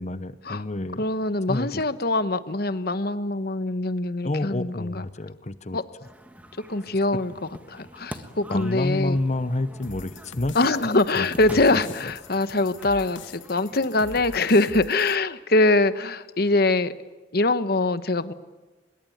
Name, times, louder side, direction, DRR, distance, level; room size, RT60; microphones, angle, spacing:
voice 1, 0.0-1.1 1.5-1.8 4.2-5.8 8.5-10.6 11.1-11.3 11.5-12.1, left 2 dB, 35° left, 14 dB, 0.9 m, -29 dB
voice 2, 1.0-5.0 5.7-5.8 6.7-9.2 10.5-16.9 17.3-18.3, left 2 dB, 50° left, 13 dB, 1.1 m, -23 dB
sound 1, 6.0-14.3, equal, 10° right, 1.5 m, -45 dB
sound 2, 9.8-15.2, left 4 dB, 75° left, 0.9 m, -43 dB
24.5 x 22.0 x 9.3 m, 1.2 s
head